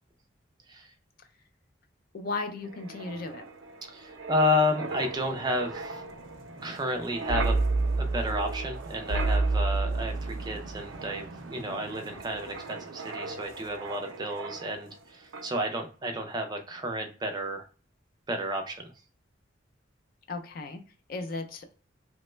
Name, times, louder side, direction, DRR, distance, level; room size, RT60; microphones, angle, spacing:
voice 1, 2.1-3.5 20.3-20.8 21.1-21.7, left 3 dB, 50° left, 7 dB, 0.4 m, -35 dB
Wind, 2.6-15.0 15.3-15.6, right 3 dB, 90° right, 0.5 m, -33 dB
voice 2, 3.9-6.0 6.6-7.6 8.0-17.7 18.3-18.9, left 1 dB, 20° right, 4 dB, 0.4 m, -31 dB
2.9 x 2.1 x 3.0 m, 0.37 s
head